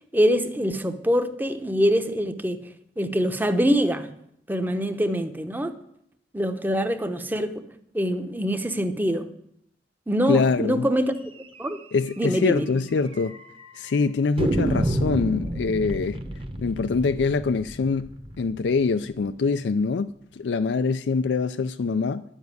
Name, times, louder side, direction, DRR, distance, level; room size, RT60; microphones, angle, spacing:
voice 1, 0.1-2.6 3.0-4.1 4.5-5.7 6.3-7.6 7.9-9.3 10.1-11.1 11.6-11.8 12.2-12.7, equal, 10° right, 0.8 m, -24 dB
voice 2, 10.3-10.8 11.9-13.3 13.7-16.2 16.6-18.1 18.4-22.2, left 4 dB, 80° left, 0.4 m, -24 dB
sound 1, 11.6-11.7 12.0-12.1 12.4-12.5 13.1-13.7 14.4-19.2, right 1 dB, 30° right, 1.1 m, -29 dB
10.5 x 7.2 x 9.5 m
head